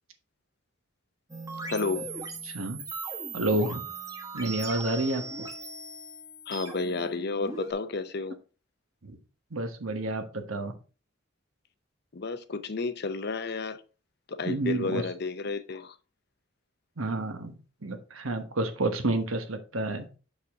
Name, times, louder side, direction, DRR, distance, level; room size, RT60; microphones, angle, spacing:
sound 1, 1.3-7.7, right 3 dB, 15° right, 1.2 m, -39 dB
voice 1, 1.7-2.1 6.5-8.4 12.1-13.8 14.3-16.0, left 3 dB, 50° left, 0.6 m, -31 dB
voice 2, 2.4-2.8 3.3-3.8 4.3-5.2 9.0-9.2 9.5-10.7 14.4-15.0 17.0-17.5 17.8-20.1, right 2 dB, 85° right, 1.2 m, -29 dB
6.6 x 5.6 x 3.6 m
head